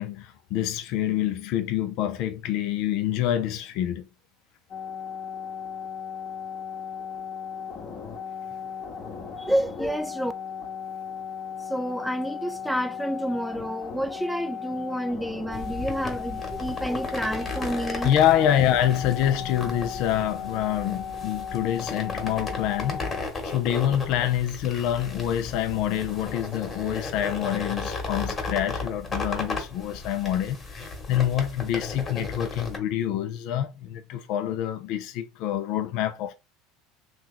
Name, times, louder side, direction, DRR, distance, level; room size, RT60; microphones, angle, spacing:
voice 1, 0.0-4.1 18.0-36.3, left 11 dB, 60° left, 0.4 m, -26 dB
sound 1, 4.7-23.3, left 7 dB, 45° left, 0.9 m, -36 dB
voice 2, 9.4-10.3 11.7-18.1, equal, ahead, 0.4 m, -29 dB
sound 2, 15.5-32.8, left 3 dB, 25° left, 1.2 m, -35 dB
2.8 x 2.3 x 3.7 m
hypercardioid pair, 95°, 0 cm